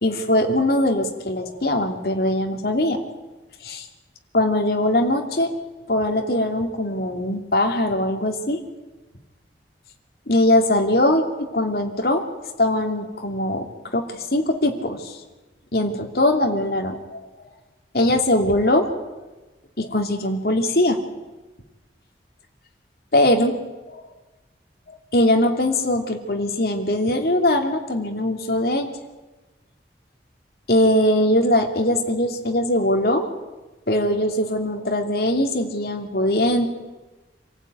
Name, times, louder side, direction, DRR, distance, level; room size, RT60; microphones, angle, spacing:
voice 1, 0.0-3.0 3.6-3.9 4.3-5.5 5.9-8.6 10.3-12.2 12.6-13.7 13.9-15.2 15.7-17.2 17.9-18.9 19.8-21.0 23.1-23.5 23.9-24.0 25.1-28.9 30.7-33.2 33.9-36.6, left 1 dB, 60° left, 3 dB, 2.8 m, -21 dB
27.0 x 15.5 x 9.4 m, 1.2 s
head